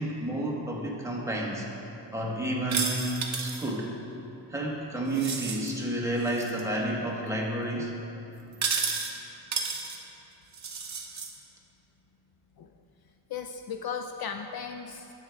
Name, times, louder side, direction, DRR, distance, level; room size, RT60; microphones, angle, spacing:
voice 1, 0.0-1.7 2.1-3.9 4.5-7.9, right 1 dB, 5° right, -3 dB, 1.1 m, -30 dB
sound 1, 2.7-3.7 5.1-5.7 6.2-6.6 8.5-9.1 9.5-10.0 10.5-11.3, right 5 dB, 40° right, 0.8 m, -32 dB
voice 2, 13.3-15.1, left 6 dB, 55° left, 5 dB, 0.5 m, -36 dB
9.8 x 8.3 x 3.5 m, 2.9 s
wide cardioid pair, 145°, 44 cm